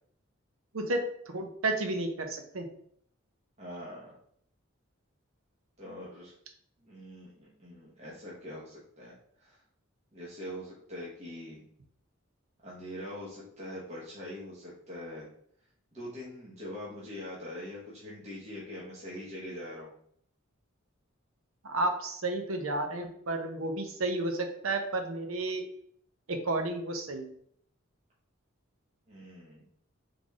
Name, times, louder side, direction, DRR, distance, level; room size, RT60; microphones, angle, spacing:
voice 1, 0.7-2.7 21.6-25.6 26.3-27.3, right 2 dB, 80° right, 5 dB, 0.8 m, -32 dB
voice 2, 3.6-4.2 5.8-6.3 6.8-9.6 10.1-11.6 12.6-15.3 15.9-19.9 29.1-29.6, left 1 dB, 30° right, -6 dB, 1.2 m, -43 dB
3.9 x 3.4 x 3.6 m, 0.65 s
head